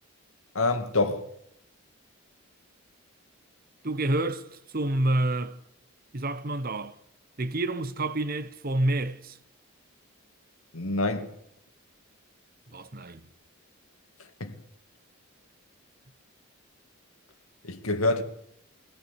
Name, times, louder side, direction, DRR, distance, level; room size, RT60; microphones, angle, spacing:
voice 1, 0.5-1.3 10.7-11.3 14.4-14.5 17.6-18.2, left 2 dB, 75° left, 2.2 m, -26 dB
voice 2, 3.8-5.6 6.1-7.0 7.4-9.4 12.7-13.2, right 1 dB, 40° right, 1.1 m, -28 dB
23.0 x 17.5 x 8.3 m
head